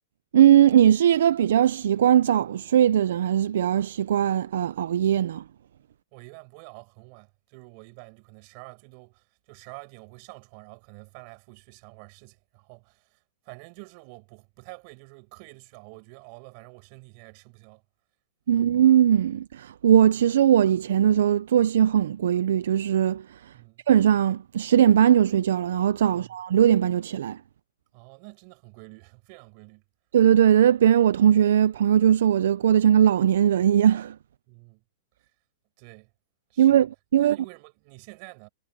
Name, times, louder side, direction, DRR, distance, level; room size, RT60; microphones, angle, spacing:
voice 1, 0.3-5.4 18.5-23.4 23.9-27.4 30.1-34.2 36.6-37.4, right 10 dB, 60° right, 0.5 m, -20 dB
voice 2, 6.1-13.2 13.4-17.8 18.5-18.7 23.5-23.8 26.1-26.4 27.9-29.8 34.5-34.8 35.8-36.1 36.5-36.9 37.2-38.5, right 30 dB, 30° right, 5.1 m, -48 dB
hypercardioid pair, 180°, 0 cm